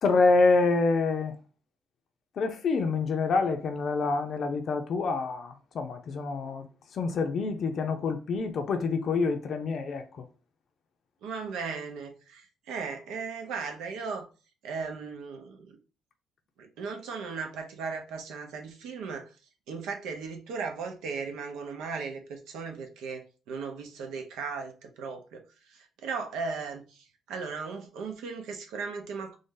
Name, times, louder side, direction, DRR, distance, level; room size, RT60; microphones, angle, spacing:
voice 1, 0.0-1.3 2.4-6.7 6.9-10.2, left 3 dB, 60° left, 0.5 m, -26 dB
voice 2, 11.2-14.3 14.6-15.8 16.6-19.3 19.7-29.4, right 5 dB, 90° right, 0.8 m, -37 dB
3.3 x 2.7 x 3.7 m
cardioid pair, 90°, 0 cm